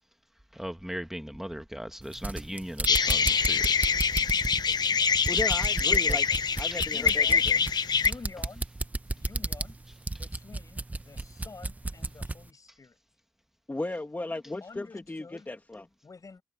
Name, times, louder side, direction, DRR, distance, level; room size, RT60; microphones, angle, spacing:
voice 1, 0.5-3.8 6.7-6.8, equal, 5° right, 1.4 m, -38 dB
sound 1, 2.0-12.4, right 2 dB, 20° right, 0.7 m, -34 dB
sound 2, 2.9-8.1, left 6 dB, 85° left, 0.7 m, -25 dB
voice 2, 4.5-5.2 5.8-7.5 7.9-8.7 9.1-9.8 10.1-13.0 14.6-15.5 16.0-16.4, left 4 dB, 55° left, 7.8 m, -48 dB
voice 3, 5.3-6.2 6.6-7.6 13.7-15.8, left 2 dB, 25° left, 2.1 m, -35 dB
wide cardioid pair, 90°, 7 cm